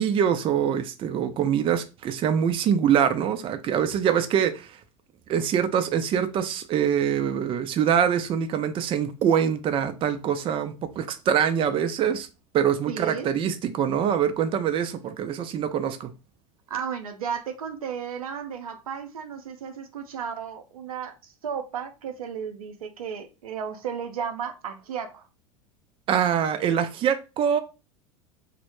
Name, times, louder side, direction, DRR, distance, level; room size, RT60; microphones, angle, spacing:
voice 1, 0.0-4.7 5.3-12.3 12.5-16.1 26.1-27.6, right 8 dB, 30° right, 0.4 m, -24 dB
voice 2, 12.9-13.3 16.7-25.3, right 7 dB, 90° right, 0.5 m, -34 dB
2.0 x 2.0 x 3.0 m
hypercardioid pair, 95°, 18 cm